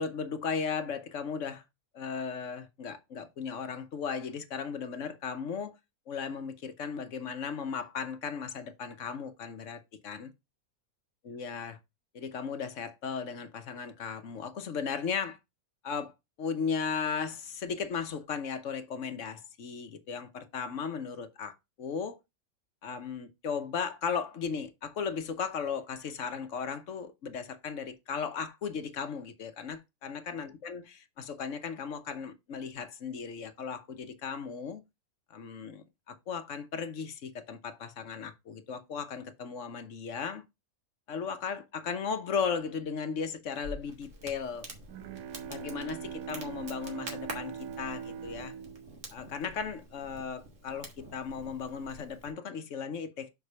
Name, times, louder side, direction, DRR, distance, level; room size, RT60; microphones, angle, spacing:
voice 1, 0.0-1.6 1.9-5.8 6.1-10.3 11.2-11.8 12.1-15.4 15.8-22.2 22.8-34.8 35.3-40.4 41.1-44.7 45.4-48.5 49.1-53.3, left 6 dB, 60° left, 1.2 m, -36 dB
Crackle, 43.6-52.3, right 1 dB, 55° right, 2.1 m, -47 dB
Bowed string instrument, 44.5-50.0, right 8 dB, 85° right, 1.2 m, -42 dB
5.8 x 4.8 x 5.4 m
omnidirectional pair, 1.5 m